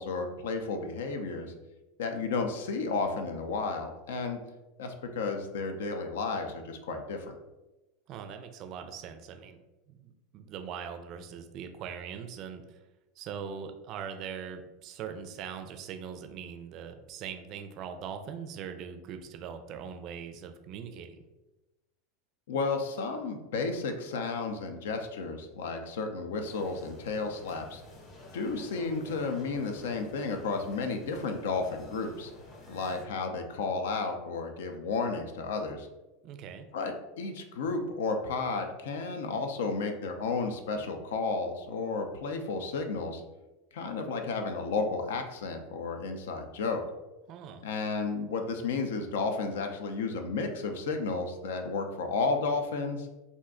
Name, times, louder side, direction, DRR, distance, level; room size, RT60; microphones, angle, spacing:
voice 1, 0.0-1.5 2.0-4.4 4.8-7.4 22.5-27.8 28.3-32.3 32.7-35.9 36.7-43.2 43.7-46.8 47.6-53.1, left 4 dB, 75° left, 5 dB, 0.4 m, -32 dB
voice 2, 8.1-9.6 9.9-12.8 13.2-21.2 36.2-36.7 47.3-47.7, right 7 dB, 50° right, 7 dB, 0.4 m, -41 dB
sound 1, 26.5-33.1, left 1 dB, 35° left, 0.8 m, -50 dB
2.5 x 2.2 x 3.6 m, 1.1 s
hypercardioid pair, 90°, 0 cm